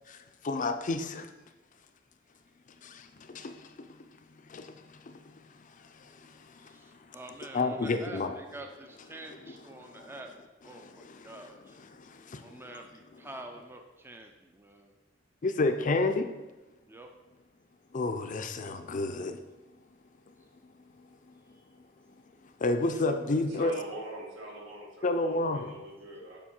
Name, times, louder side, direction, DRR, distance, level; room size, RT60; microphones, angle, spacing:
voice 1, 0.4-1.3 2.8-4.0 4.5-6.8 7.1-8.4 9.1-10.4 10.6-12.8 13.1-13.3 15.4-16.3 17.9-19.4 22.4-23.7 25.0-25.7, left 2 dB, 40° left, 7 dB, 0.5 m, -32 dB
voice 2, 7.1-10.3 10.6-11.7 12.4-14.9 16.9-17.1 22.9-23.0, right 1 dB, 10° right, 4 dB, 0.5 m, -46 dB
voice 3, 23.4-26.4, right 1 dB, 80° right, -2 dB, 2.0 m, -44 dB
7.2 x 5.4 x 4.4 m, 1.1 s
head